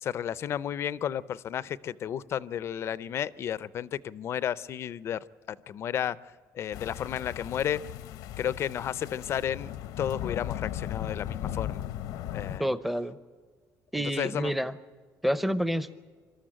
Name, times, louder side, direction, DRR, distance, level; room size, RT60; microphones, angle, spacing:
voice 1, 0.0-5.2 5.5-6.2 6.5-7.8 8.4-9.7 10.0-11.9 12.3-12.7 13.9-14.5, left 9 dB, 45° left, 19 dB, 0.5 m, -32 dB
sound 1, 6.7-12.6, left 11 dB, 85° left, 0.9 m, -37 dB
voice 2, 12.6-13.2 13.9-14.7 15.2-15.9, equal, ahead, 14 dB, 0.7 m, -28 dB
25.5 x 13.0 x 8.9 m, 1.6 s
cardioid pair, 150°, 6 cm